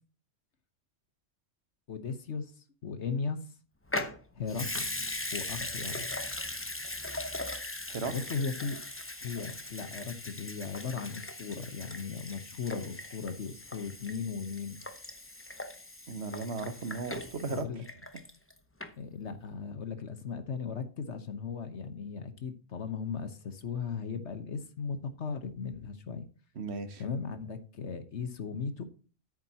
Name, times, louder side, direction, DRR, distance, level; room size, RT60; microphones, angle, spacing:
voice 1, 1.9-2.5 2.8-3.4 4.3-4.9 5.3-6.1 8.1-8.8 9.2-14.8 17.5-17.8 19.0-26.3 27.0-28.8, left 5 dB, 65° left, 1.3 m, -37 dB
Water tap faucet / Sink (filling or washing) / Liquid, 3.9-18.5 18.8-18.9, left 2 dB, 10° left, 0.8 m, -39 dB
voice 2, 16.1-17.7 26.5-27.0, right 4 dB, 60° right, 1.4 m, -36 dB
10.0 x 8.8 x 2.9 m
omnidirectional pair, 1.3 m